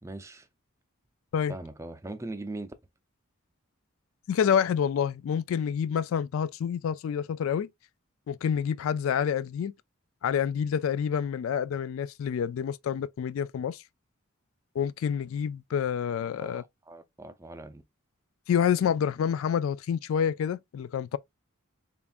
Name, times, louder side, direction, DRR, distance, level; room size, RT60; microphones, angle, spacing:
voice 1, 0.0-0.5 1.5-2.7 16.4-17.8, right 2 dB, 15° right, 0.4 m, -40 dB
voice 2, 4.3-7.7 8.3-9.7 10.2-13.8 14.8-16.6 18.5-21.2, left 8 dB, 70° left, 0.3 m, -28 dB
6.8 x 2.4 x 2.4 m
head